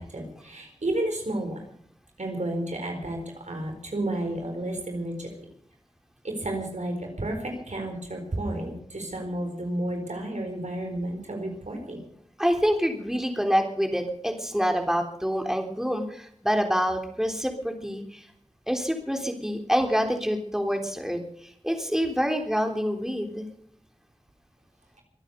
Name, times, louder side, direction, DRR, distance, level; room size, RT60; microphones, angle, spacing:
voice 1, 0.0-1.6 2.2-5.3 6.2-12.0, right 1 dB, 90° right, 3 dB, 4.5 m, -31 dB
voice 2, 12.4-18.2 18.7-21.2 21.6-23.5, equal, 5° right, 4 dB, 3.4 m, -26 dB
24.0 x 8.8 x 6.7 m, 0.63 s
wide cardioid pair, 40°, 12 cm